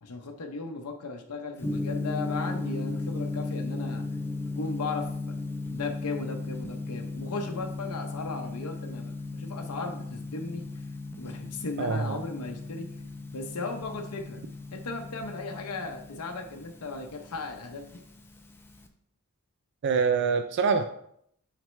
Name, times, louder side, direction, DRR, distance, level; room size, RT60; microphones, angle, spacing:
voice 1, 0.0-4.0 4.6-5.3 5.7-10.6 11.2-12.9 13.3-14.4 14.7-18.0, left 3 dB, 85° left, 3 dB, 0.7 m, -36 dB
Gong, 1.6-18.9, left 2 dB, 10° left, 0.5 m, -36 dB
voice 2, 11.8-12.2 19.8-20.8, right 5 dB, 55° right, 7 dB, 0.3 m, -25 dB
6.1 x 5.0 x 3.2 m, 0.71 s
head